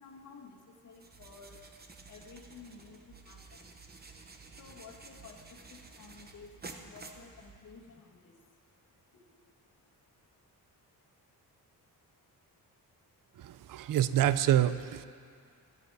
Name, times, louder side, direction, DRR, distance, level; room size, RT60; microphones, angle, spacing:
voice 1, 0.0-10.6, left 5 dB, 50° left, 2 dB, 1.7 m, -55 dB
sound 1, 0.9-7.9, right 3 dB, 25° right, 0.9 m, -52 dB
voice 2, 13.4-15.0, right 11 dB, 60° right, 14 dB, 0.5 m, -27 dB
24.5 x 8.3 x 4.8 m, 2.2 s
wide cardioid pair, 140°, 37 cm